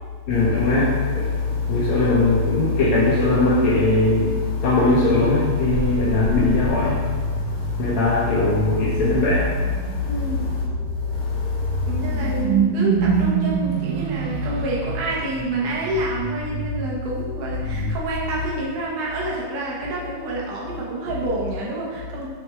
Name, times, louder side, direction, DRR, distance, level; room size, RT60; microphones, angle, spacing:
voice 1, 0.3-10.3 11.1-12.0 17.7-17.9, left 3 dB, 70° left, -5 dB, 1.8 m, -20 dB
sound 1, 5.7-18.9, right 6 dB, 90° right, 1.6 m, -28 dB
voice 2, 10.1-10.5 11.9-22.3, right 2 dB, 70° right, -5 dB, 2.6 m, -28 dB
6.4 x 6.2 x 3.5 m, 1.5 s
omnidirectional pair, 4.0 m